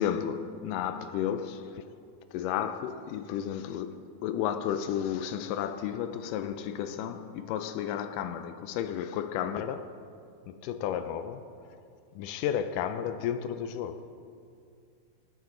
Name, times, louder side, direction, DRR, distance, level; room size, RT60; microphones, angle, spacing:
voice 1, 0.0-1.8 2.3-10.0 10.5-11.8 12.2-14.1, left 9 dB, 90° left, 1.8 m, -33 dB
18.5 x 9.2 x 3.8 m
omnidirectional pair, 4.3 m